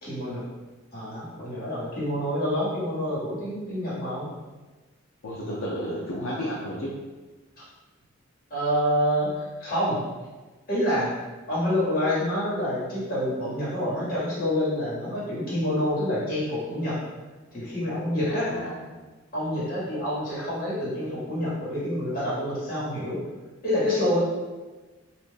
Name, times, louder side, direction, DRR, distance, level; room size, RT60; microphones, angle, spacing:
voice 1, 0.0-0.4 0.9-4.3 8.5-9.3 9.6-10.0 10.7-11.2 11.5-17.0 17.5-18.5 19.3-23.2 23.6-24.2, equal, 45° left, -9 dB, 1.5 m, -27 dB
voice 2, 5.2-7.0 18.2-18.9, equal, 80° left, -4 dB, 0.5 m, -32 dB
2.5 x 2.4 x 3.6 m, 1.2 s
head